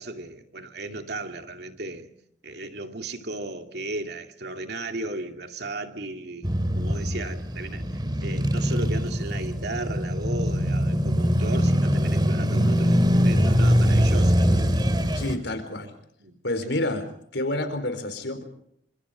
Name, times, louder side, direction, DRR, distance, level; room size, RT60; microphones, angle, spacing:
voice 1, 0.0-2.1 2.4-6.5 6.8-14.4 16.2-16.4, right 2 dB, 65° right, 2.6 m, -35 dB
Male speech man speaking / Motorcycle / Idling, 6.4-15.4, equal, 25° right, 2.5 m, -22 dB
voice 2, 15.1-15.9 16.4-17.1 17.3-18.4, left 1 dB, 75° left, 4.3 m, -28 dB
29.0 x 26.5 x 5.1 m
head